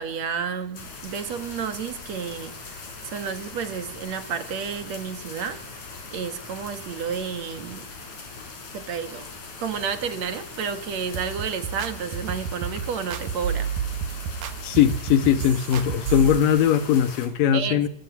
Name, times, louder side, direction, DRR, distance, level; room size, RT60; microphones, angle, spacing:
voice 1, 0.0-5.8 6.1-7.9 8.7-9.3 9.6-13.7 17.5-17.8, right 6 dB, 55° right, 2.8 m, -31 dB
sound 1, 0.7-17.3, left 4 dB, 60° left, 5.9 m, -40 dB
sound 2, 11.1-16.4, right 8 dB, 80° right, 3.1 m, -30 dB
voice 2, 14.6-17.9, left 9 dB, 80° left, 3.0 m, -20 dB
27.0 x 20.5 x 9.5 m
omnidirectional pair, 3.9 m